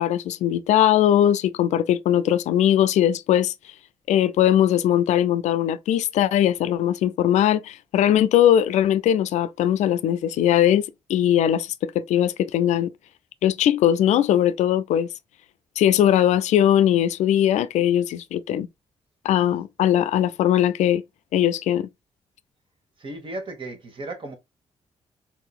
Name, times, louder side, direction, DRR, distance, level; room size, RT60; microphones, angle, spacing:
voice 1, 0.0-3.5 4.1-12.9 13.4-15.1 15.8-18.7 19.2-21.0 21.3-21.9, left 11 dB, 85° left, 0.4 m, -20 dB
voice 2, 23.0-24.3, right 2 dB, 45° right, 1.4 m, -35 dB
4.2 x 2.8 x 2.4 m
cardioid pair, 75°, 12 cm